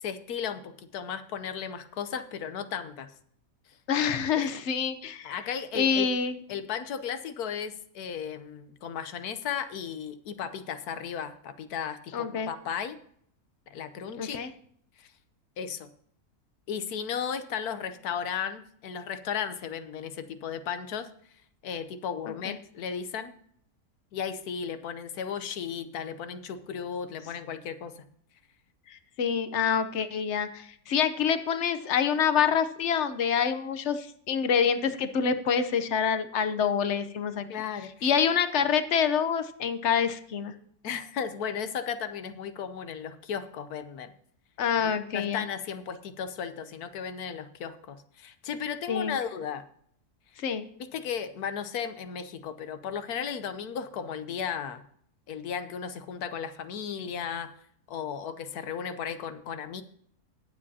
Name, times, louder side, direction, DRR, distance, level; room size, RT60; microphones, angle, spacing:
voice 1, 0.0-3.1 4.4-4.5 5.2-6.1 6.5-13.0 13.7-14.4 15.0-15.1 15.6-15.9 16.7-21.1 21.6-23.3 24.1-28.0 37.5-38.1 40.8-44.1 44.8-49.7 50.9-54.8 55.3-57.5 57.9-59.8, left 7 dB, 85° left, 11 dB, 1.3 m, -35 dB
voice 2, 3.9-5.3 5.7-6.3 12.1-12.5 14.2-14.5 22.3-22.6 28.9-37.5 38.0-40.5 44.6-45.5 48.9-49.2 50.4-50.7, left 7 dB, 55° left, 10 dB, 1.0 m, -26 dB
19.5 x 7.6 x 2.8 m, 0.65 s
omnidirectional pair, 1.6 m